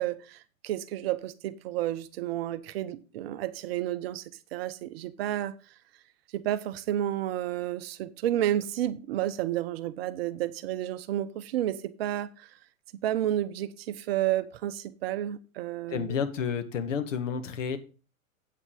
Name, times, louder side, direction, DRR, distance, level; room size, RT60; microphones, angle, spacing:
voice 1, 0.0-4.2 4.5-5.5 6.3-12.5 13.0-16.2, right 12 dB, 45° right, 0.8 m, -31 dB
voice 2, 15.9-17.8, left 7 dB, 60° left, 1.6 m, -30 dB
8.5 x 7.5 x 4.8 m
hypercardioid pair, 110°, 42 cm